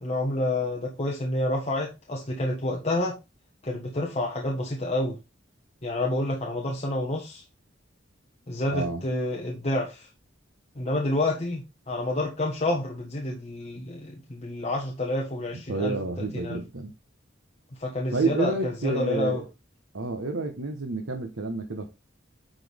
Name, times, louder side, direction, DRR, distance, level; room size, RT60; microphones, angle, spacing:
voice 1, 0.0-3.1 3.6-5.2 5.8-7.4 8.5-10.1 10.7-16.0 16.3-16.6 17.8-19.4, left 1 dB, 35° left, 1.3 m, -29 dB
voice 2, 8.7-9.0 15.5-16.9 18.1-19.5 19.9-21.9, right 3 dB, 85° right, 1.2 m, -29 dB
10.0 x 4.3 x 3.5 m
head